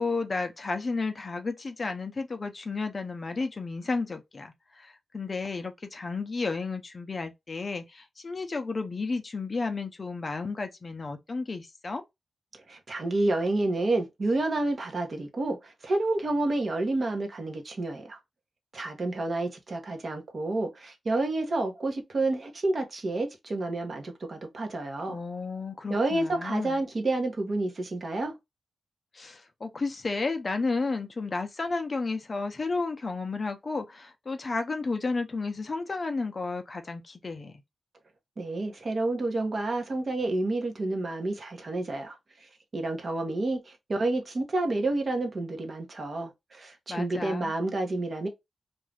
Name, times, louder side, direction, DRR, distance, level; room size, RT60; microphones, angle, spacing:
voice 1, 0.0-12.0 25.1-26.8 29.1-37.5 46.9-47.5, left 3 dB, 35° left, 0.5 m, -32 dB
voice 2, 12.7-18.2 18.7-25.2 25.9-28.3 38.4-48.3, right 2 dB, 45° right, 0.8 m, -29 dB
2.5 x 2.3 x 3.2 m
wide cardioid pair, 125°, 0 cm